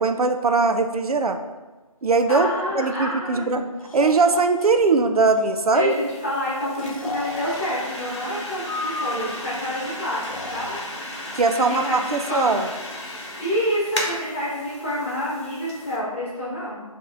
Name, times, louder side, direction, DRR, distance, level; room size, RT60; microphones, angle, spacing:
voice 1, 0.0-1.4 2.0-2.5 2.7-3.6 3.9-6.0 11.3-12.7, right 3 dB, 80° right, 7 dB, 0.5 m, -20 dB
Breathing, 2.3-2.8 3.8-4.7 5.2-5.6 6.8-7.8 8.6-9.5 10.2-10.9, left 3 dB, 65° left, 0.6 m, -33 dB
voice 2, 2.3-3.7 5.7-10.8 11.5-12.6 13.4-16.8, equal, 20° left, -9 dB, 1.3 m, -28 dB
sound 1, 5.9-16.0, left 1 dB, 50° left, 1.0 m, -35 dB
6.7 x 2.9 x 2.5 m, 1.2 s
figure-of-eight pair, 180°, 19 cm